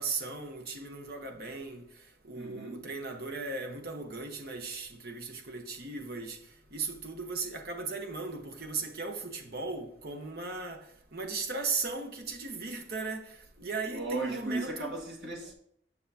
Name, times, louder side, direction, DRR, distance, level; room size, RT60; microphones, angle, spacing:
voice 1, 0.0-1.8 2.2-6.4 6.7-10.8 11.1-13.3 13.6-14.9, right 4 dB, 60° right, 1.1 m, -37 dB
voice 2, 2.3-2.8 13.9-15.5, right 2 dB, 75° right, 1.9 m, -35 dB
8.4 x 6.6 x 2.8 m
head